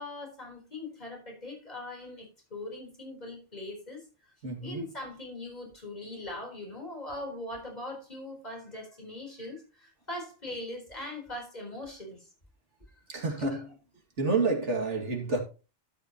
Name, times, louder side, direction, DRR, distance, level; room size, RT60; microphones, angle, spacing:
voice 1, 0.0-4.0 4.6-12.3 12.9-13.0, left 1 dB, 35° left, 4.6 m, -41 dB
voice 2, 4.4-4.8 13.1-13.8 14.2-15.4, right 3 dB, 90° right, 2.7 m, -29 dB
12.0 x 8.9 x 3.0 m
omnidirectional pair, 1.2 m